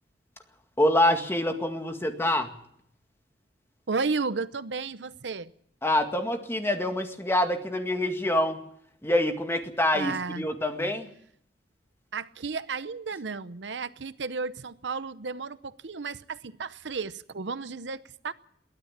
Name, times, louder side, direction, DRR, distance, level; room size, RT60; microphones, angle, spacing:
voice 1, 0.8-2.5 5.8-8.6 9.0-11.1, left 1 dB, 15° left, 2.0 m, -26 dB
voice 2, 3.9-5.5 9.9-10.5 12.1-18.3, right 4 dB, 75° right, 0.8 m, -33 dB
22.5 x 15.5 x 7.4 m
head